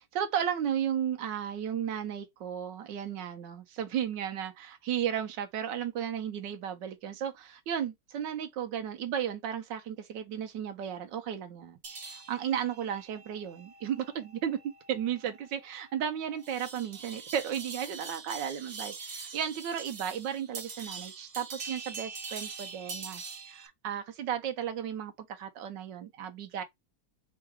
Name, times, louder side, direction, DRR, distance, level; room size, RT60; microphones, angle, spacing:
voice 1, 0.0-14.6 14.9-26.6, right 9 dB, 80° right, 1.4 m, -34 dB
sound 1, 11.8-23.7, right 4 dB, 45° right, 0.7 m, -44 dB
3.7 x 2.3 x 4.6 m
omnidirectional pair, 1.9 m